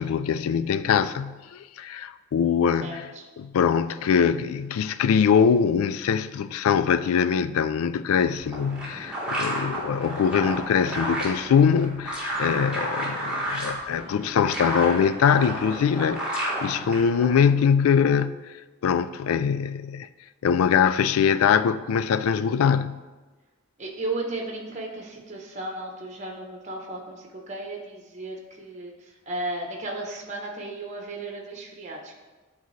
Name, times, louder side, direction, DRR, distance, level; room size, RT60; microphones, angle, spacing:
voice 1, 0.0-3.1 3.4-18.4 18.8-20.1 20.4-23.0, left 7 dB, 90° left, 0.3 m, -23 dB
voice 2, 2.8-3.2 23.8-32.2, right 2 dB, 35° right, 0.9 m, -35 dB
sound 1, 8.3-17.5, right 1 dB, 5° right, 1.3 m, -31 dB
10.5 x 3.9 x 3.2 m
head